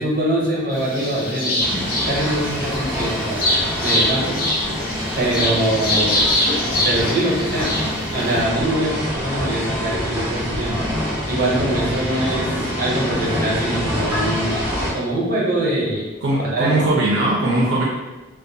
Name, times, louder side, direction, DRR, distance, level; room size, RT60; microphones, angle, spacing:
voice 1, 0.0-1.6 2.0-3.5 3.8-4.4 5.2-6.3 6.8-7.7 8.1-10.7 11.3-14.6 14.9-16.1 16.5-16.8, right 1 dB, 50° right, -6 dB, 0.8 m, -23 dB
sound 1, 0.7-8.4, left 1 dB, 50° left, 0.4 m, -24 dB
sound 2, 1.6-14.9, equal, 10° right, 0.6 m, -26 dB
voice 2, 16.2-17.8, right 2 dB, 80° right, -5 dB, 0.5 m, -19 dB
2.4 x 2.1 x 2.6 m, 1.2 s
head